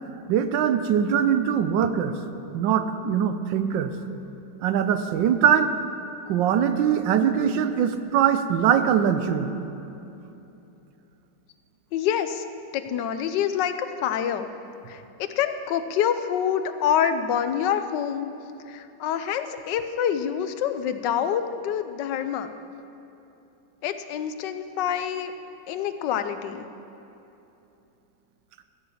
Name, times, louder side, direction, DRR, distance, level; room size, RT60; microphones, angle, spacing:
voice 1, 0.3-2.1 2.5-3.9 4.6-5.7 6.3-9.5 17.0-17.1, right 8 dB, 85° right, 10 dB, 1.3 m, -22 dB
voice 2, 11.9-12.4 12.7-14.5 14.9-18.3 18.7-22.5 23.8-25.3 25.7-26.6, left 9 dB, 75° left, 10 dB, 1.3 m, -26 dB
14.5 x 7.0 x 7.1 m, 2.9 s
omnidirectional pair, 2.0 m